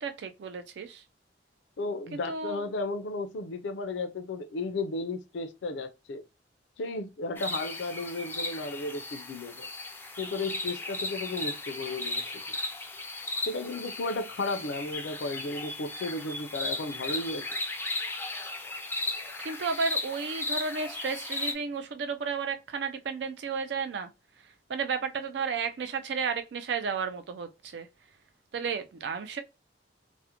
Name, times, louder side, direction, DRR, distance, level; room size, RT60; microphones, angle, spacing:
voice 1, 0.0-1.0 2.1-2.6 19.4-24.1 24.4-27.9 28.5-29.4, right 5 dB, 70° right, 0.4 m, -33 dB
voice 2, 1.8-6.2 6.8-9.7 10.2-12.4 13.5-17.4, left 2 dB, 85° left, 0.4 m, -34 dB
sound 1, 7.4-21.5, left 2 dB, 10° left, 0.3 m, -36 dB
2.4 x 2.1 x 2.8 m
head